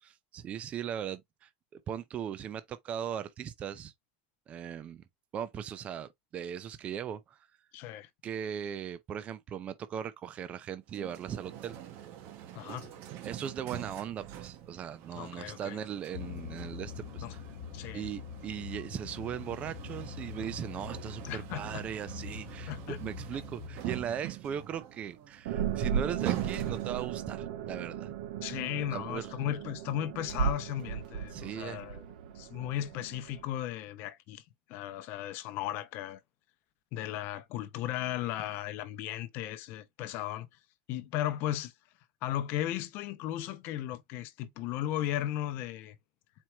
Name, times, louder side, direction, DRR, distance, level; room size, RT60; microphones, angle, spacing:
voice 1, 0.0-3.9 4.5-5.0 5.3-7.4 8.2-11.8 13.2-17.4 17.9-28.1 28.9-29.3 31.3-31.8, right 9 dB, 30° right, 0.4 m, -38 dB
voice 2, 7.7-8.1 12.5-12.9 15.1-15.8 17.2-17.3 17.7-18.1 21.2-21.9 22.7-23.0 28.4-32.0 32.3-34.4 34.7-36.2 36.9-40.5 40.9-41.7 42.2-46.0, left 12 dB, 50° left, 0.7 m, -36 dB
sound 1, 10.9-27.3, right 12 dB, 50° right, 0.9 m, -43 dB
sound 2, 16.1-24.0, left 8 dB, 65° left, 1.2 m, -44 dB
sound 3, 25.5-33.4, right 8 dB, 75° right, 0.7 m, -36 dB
4.4 x 2.1 x 4.4 m
supercardioid pair, 140°, 5 cm